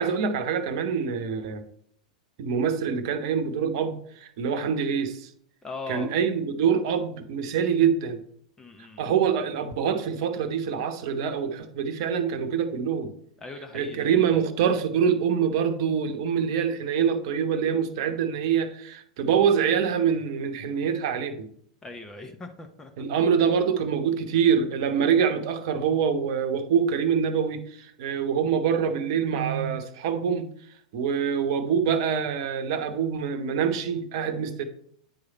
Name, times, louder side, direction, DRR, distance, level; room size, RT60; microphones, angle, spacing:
voice 1, 0.0-1.6 2.4-5.3 5.9-8.2 9.0-13.1 13.7-21.5 23.0-30.5 30.9-34.6, right 7 dB, 50° right, 8 dB, 1.0 m, -25 dB
voice 2, 5.6-6.1 8.6-9.1 13.4-14.3 21.8-22.9, left 3 dB, 15° left, 5 dB, 0.8 m, -40 dB
9.3 x 4.9 x 4.1 m, 0.65 s
figure-of-eight pair, 95°, 4 cm